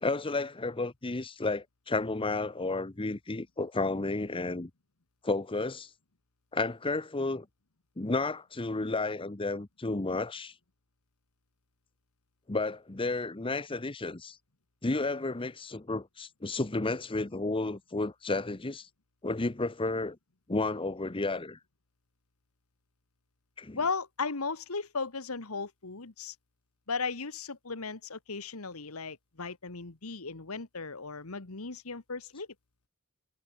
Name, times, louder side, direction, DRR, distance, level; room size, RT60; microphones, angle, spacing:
voice 1, 0.0-4.7 5.2-5.9 6.5-7.5 8.0-10.5 12.5-14.4 14.8-18.9 19.2-20.2 20.5-21.6 23.6-23.8, left 3 dB, 25° left, 0.9 m, -32 dB
voice 2, 23.7-26.4 26.9-32.5, left 4 dB, 80° left, 1.7 m, -36 dB
head